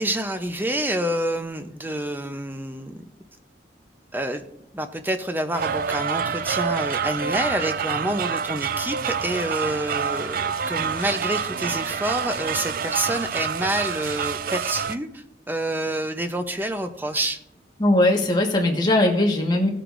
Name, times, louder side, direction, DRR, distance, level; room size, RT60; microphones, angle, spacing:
voice 1, 0.0-3.0 4.1-4.4 4.7-17.4, right 1 dB, 10° right, 7 dB, 0.7 m, -28 dB
sound 1, 5.5-15.0, right 6 dB, 50° right, 0.4 m, -27 dB
voice 2, 17.8-19.7, left 1 dB, 25° left, 0 dB, 1.5 m, -19 dB
16.5 x 7.9 x 2.6 m, 0.79 s
head